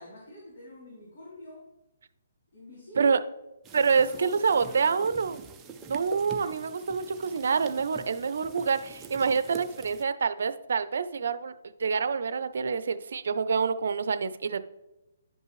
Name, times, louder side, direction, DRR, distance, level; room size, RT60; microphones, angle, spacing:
voice 1, 0.0-1.7 2.5-3.2 3.7-5.4 8.0-8.2, left 1 dB, 65° left, -5 dB, 3.1 m, -47 dB
sound 1, 3.6-10.0, right 5 dB, 15° right, 0.5 m, -45 dB
voice 2, 3.7-5.4 5.9-11.5 11.8-14.6, right 5 dB, 70° right, 13 dB, 0.6 m, -27 dB
10.5 x 5.4 x 3.1 m, 0.96 s
hypercardioid pair, 160°, 0 cm